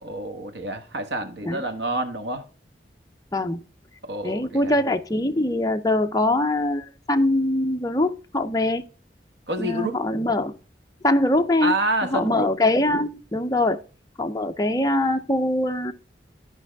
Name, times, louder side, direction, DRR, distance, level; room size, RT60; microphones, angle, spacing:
voice 1, 0.0-2.5 4.0-4.8 9.5-9.9 11.6-12.5, right 2 dB, 75° right, 1.3 m, -28 dB
voice 2, 4.2-8.8 9.6-10.6 11.0-11.7 12.1-13.8 14.2-15.9, left 1 dB, 20° left, 0.6 m, -23 dB
12.0 x 5.3 x 3.5 m
head